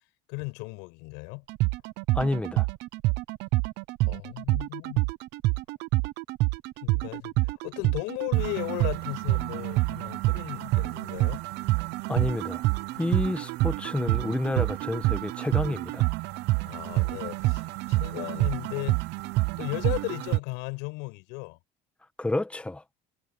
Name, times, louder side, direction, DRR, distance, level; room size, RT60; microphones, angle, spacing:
voice 1, 0.3-1.4 4.1-5.1 6.8-11.4 16.6-19.0 19.6-21.6, left 29 dB, 90° left, 6.3 m, -36 dB
sound 1, 1.5-20.4, right 20 dB, 75° right, 0.8 m, -27 dB
voice 2, 2.1-2.7 12.1-12.6 13.0-16.1 22.2-22.8, left 2 dB, 5° left, 1.2 m, -29 dB
cardioid pair, 120°, 18 cm